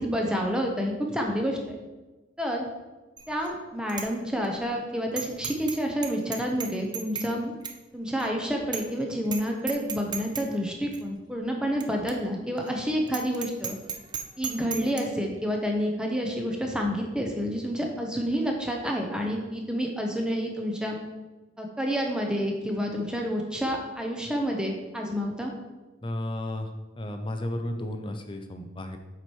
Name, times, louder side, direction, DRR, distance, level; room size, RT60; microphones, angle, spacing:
voice 1, 0.0-1.8 2.4-2.7 3.3-7.5 7.9-13.8 14.4-21.0 21.6-25.5, equal, 5° right, 1 dB, 0.9 m, -29 dB
Bicycle bell, 3.2-3.5 3.9-4.1 4.4-4.5 5.2-5.8 6.0-7.3 7.6-7.8 8.2-8.3 8.7-9.0 9.2-9.4 9.7-10.4 10.9-11.0 11.8-11.9 12.1-12.2 12.6-12.7 13.1-15.0, right 7 dB, 20° right, 0.5 m, -34 dB
voice 2, 26.0-26.7 27.0-29.0, left 1 dB, 25° left, 6 dB, 0.6 m, -33 dB
7.7 x 4.8 x 4.6 m, 1.2 s
head